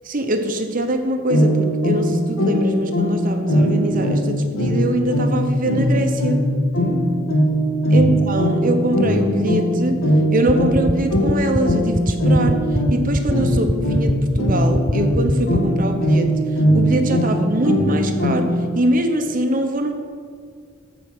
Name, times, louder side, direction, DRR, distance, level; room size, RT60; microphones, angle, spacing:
voice 1, 0.0-6.4 7.9-10.0 10.3-12.6 12.9-16.3 16.7-18.5 18.7-19.9, right 1 dB, 40° right, 5 dB, 1.0 m, -23 dB
sound 1, 1.3-18.7, equal, 80° left, 1.8 m, -20 dB
sound 2, 10.5-15.6, equal, 5° right, 0.4 m, -21 dB
15.0 x 5.1 x 6.1 m, 2.2 s
head